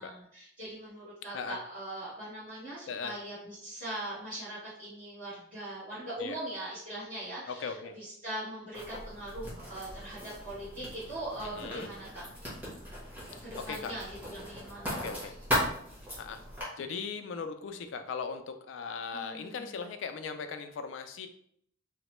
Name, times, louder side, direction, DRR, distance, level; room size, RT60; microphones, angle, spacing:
voice 1, 0.0-12.2 13.4-15.1 19.1-19.8, right 1 dB, 45° right, -15 dB, 1.4 m, -41 dB
voice 2, 7.5-8.0 11.4-11.9 13.6-13.9 14.9-15.4 16.2-16.4 16.8-21.3, left 5 dB, 85° left, 8 dB, 0.3 m, -38 dB
Writing, 8.7-16.6, equal, 10° right, 0.9 m, -38 dB
2.9 x 2.1 x 3.0 m, 0.68 s
head